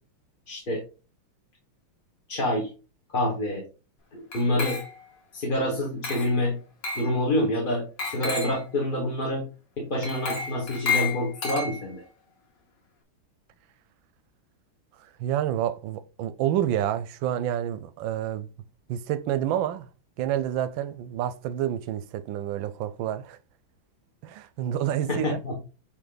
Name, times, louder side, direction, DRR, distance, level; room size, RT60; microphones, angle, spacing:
voice 1, 0.5-0.8 2.3-2.7 3.1-3.6 4.1-4.8 5.3-6.6 6.9-9.4 9.8-12.0 25.1-25.6, left 1 dB, 30° left, 1.1 m, -27 dB
Glass, 4.3-5.2 6.0-6.4 6.8-7.1 8.0-8.6 10.0-12.1, left 5 dB, 60° left, 2.2 m, -31 dB
voice 2, 15.2-18.5 18.9-19.9 20.2-23.4 24.2-25.4, right 11 dB, 75° right, 1.2 m, -28 dB
8.5 x 3.1 x 3.9 m
omnidirectional pair, 2.3 m